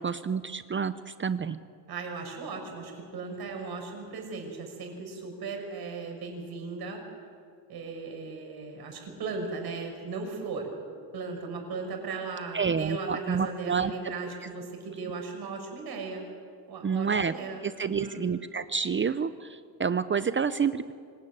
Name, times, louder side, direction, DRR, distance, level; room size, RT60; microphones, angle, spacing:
voice 1, 0.0-1.6 12.5-13.9 16.8-17.3 17.6-20.9, right 6 dB, 30° right, 13 dB, 0.7 m, -29 dB
voice 2, 1.9-7.0 7.7-10.7 11.1-16.2 16.6-18.3, right 4 dB, 60° right, 2 dB, 6.5 m, -37 dB
25.0 x 17.0 x 9.8 m, 2.2 s
cardioid pair, 105°, 42 cm